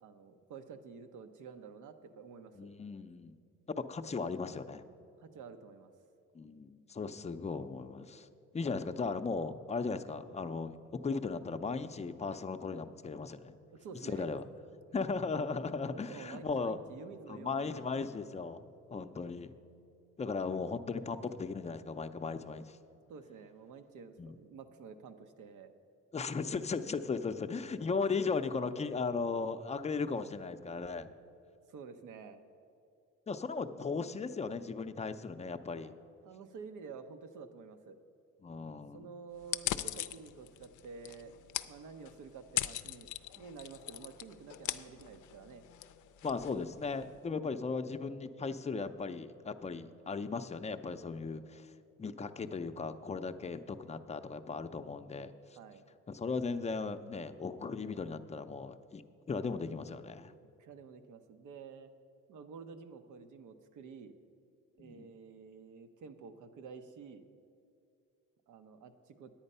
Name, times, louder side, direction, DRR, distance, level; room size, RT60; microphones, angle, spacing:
voice 1, 0.0-2.7 5.2-5.9 13.8-14.3 15.9-17.8 22.9-25.7 31.7-32.4 35.8-35.9 36.2-38.0 38.9-41.3 41.6-43.1 43.4-45.6 53.4-53.5 55.5-55.9 60.6-61.9 62.3-64.2 64.7-67.3 68.5-69.3, right 5 dB, 80° right, 9 dB, 0.8 m, -50 dB
voice 2, 2.6-3.4 3.7-4.8 6.3-8.3 8.5-13.5 14.0-14.5 14.9-16.8 17.3-19.5 20.2-22.8 24.2-24.3 26.1-31.1 33.3-35.9 38.4-39.1 46.2-51.7 52.0-55.3 56.1-59.0 59.3-60.3 64.8-65.1, left 4 dB, 20° left, 9 dB, 0.5 m, -37 dB
sound 1, 39.4-47.2, left 13 dB, 75° left, 0.5 m, -41 dB
10.0 x 8.8 x 5.4 m, 2.5 s
cardioid pair, 90°, 30 cm